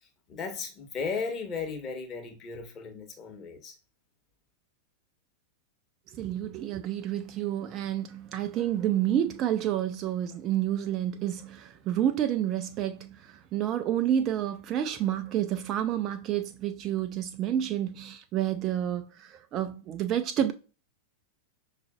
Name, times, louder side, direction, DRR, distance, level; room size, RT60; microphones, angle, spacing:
voice 1, 0.3-3.8, left 5 dB, 30° left, 1.0 m, -35 dB
voice 2, 6.1-20.5, right 11 dB, 35° right, 0.3 m, -29 dB
5.8 x 2.5 x 2.3 m
figure-of-eight pair, 90°, 0 cm